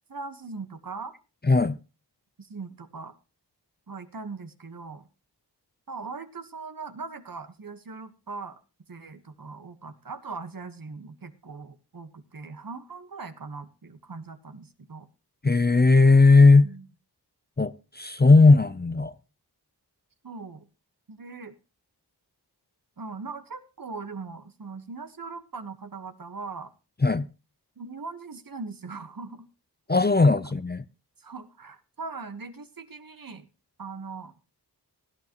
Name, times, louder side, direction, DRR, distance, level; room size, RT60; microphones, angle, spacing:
voice 1, 0.1-1.1 2.4-3.1 3.9-5.1 5.9-8.6 8.9-15.1 16.6-16.9 20.2-20.6 21.1-21.5 23.0-26.7 27.8-29.4 31.2-33.5 33.8-34.3, right 4 dB, 55° right, 1.4 m, -40 dB
voice 2, 1.4-1.8 15.4-16.7 17.6-19.1 27.0-27.3 29.9-30.8, left 3 dB, 25° left, 0.6 m, -17 dB
17.0 x 10.5 x 3.0 m
wide cardioid pair, 60°, 41 cm